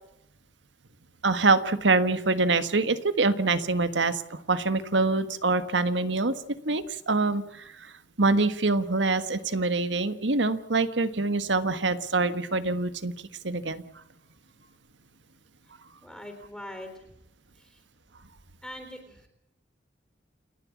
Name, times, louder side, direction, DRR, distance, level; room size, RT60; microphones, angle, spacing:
voice 1, 1.2-6.3 6.6-13.1 13.4-13.8, right 3 dB, 80° right, 12 dB, 1.5 m, -25 dB
voice 2, 16.0-17.1 17.5-17.8 18.6-19.3, left 1 dB, 5° left, 5 dB, 3.6 m, -42 dB
29.0 x 11.5 x 8.5 m, 0.82 s
head